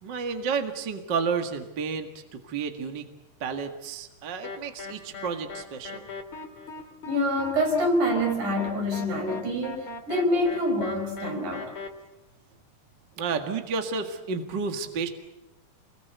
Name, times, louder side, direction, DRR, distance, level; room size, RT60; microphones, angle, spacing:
voice 1, 0.0-2.1 2.4-3.0 3.4-6.1 13.2-15.1, right 5 dB, 40° right, 6 dB, 2.0 m, -31 dB
sound 1, 4.4-11.9, left 3 dB, 40° left, 3.0 m, -39 dB
voice 2, 7.1-11.7, equal, 65° right, 3 dB, 6.5 m, -26 dB
29.0 x 21.5 x 8.2 m, 0.99 s
omnidirectional pair, 3.9 m